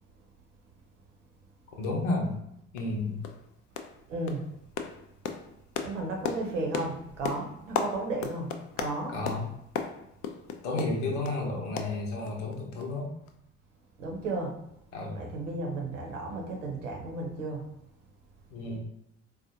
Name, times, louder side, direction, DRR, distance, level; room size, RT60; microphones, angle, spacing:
voice 1, 1.8-2.3 2.7-3.2 9.1-9.5 10.6-13.1 14.9-15.3 18.5-18.8, left 2 dB, 75° left, 0 dB, 0.9 m, -31 dB
sound 1, 2.3-2.4 2.8-2.9 3.2-3.5 3.8-4.0 4.3-11.4 11.8-12.5 12.8-12.9 13.3-13.4, left 6 dB, 55° left, 0.5 m, -36 dB
voice 2, 4.1-4.4 5.8-9.2 14.0-14.6 15.1-17.6, right 2 dB, 80° right, 0 dB, 0.8 m, -34 dB
4.1 x 2.4 x 2.7 m, 0.78 s
figure-of-eight pair, 50°, 37 cm